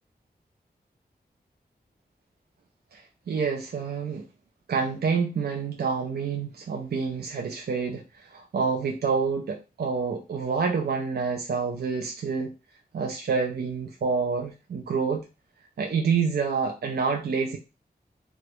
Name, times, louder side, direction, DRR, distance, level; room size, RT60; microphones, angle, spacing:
voice 1, 2.9-4.3 4.7-12.5 12.9-15.3 15.8-17.6, right 5 dB, 70° right, 2 dB, 0.5 m, -28 dB
3.1 x 2.3 x 2.9 m, 0.29 s
wide cardioid pair, 95°, 17 cm